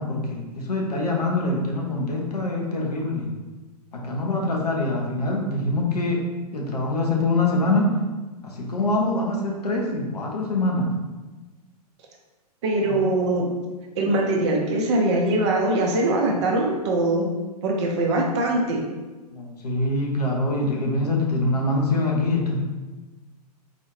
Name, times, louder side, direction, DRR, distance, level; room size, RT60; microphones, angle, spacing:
voice 1, 0.0-3.3 3.9-6.2 6.5-7.9 8.4-10.9 12.9-13.0 19.3-22.6, left 2 dB, 75° left, -1 dB, 0.9 m, -24 dB
voice 2, 12.6-13.5 14.0-17.3 17.6-18.8, right 2 dB, 45° right, 0 dB, 0.7 m, -22 dB
4.0 x 2.6 x 3.1 m, 1.2 s
figure-of-eight pair, 105°, 20 cm